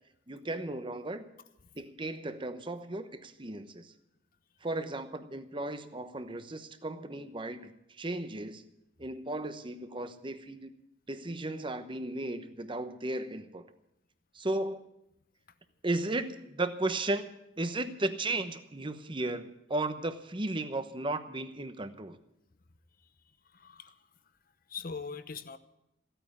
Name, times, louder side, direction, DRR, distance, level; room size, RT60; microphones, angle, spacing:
voice 1, 0.3-1.2 1.8-3.9 4.6-8.6 9.0-10.7 11.1-13.7 14.3-14.8 15.8-17.3 17.6-22.2, right 2 dB, 25° right, 10 dB, 1.0 m, -35 dB
voice 2, 23.5-24.0 24.7-25.6, left 5 dB, 50° left, 13 dB, 0.9 m, -41 dB
15.5 x 9.0 x 9.6 m, 0.82 s
head